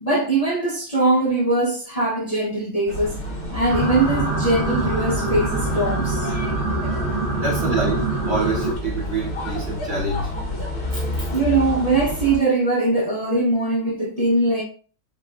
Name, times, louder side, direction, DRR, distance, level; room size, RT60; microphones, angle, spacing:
voice 1, 0.0-3.2 3.5-6.3 11.3-14.6, right 2 dB, 35° left, 0.7 m, -21 dB
sound 1, 2.9-12.4, left 1 dB, 65° left, 2.3 m, -29 dB
sound 2, 3.7-8.8, right 2 dB, 85° right, 1.7 m, -25 dB
voice 2, 7.4-10.3 10.9-11.3, right 3 dB, 50° right, 1.3 m, -27 dB
4.9 x 2.4 x 2.4 m
omnidirectional pair, 1.6 m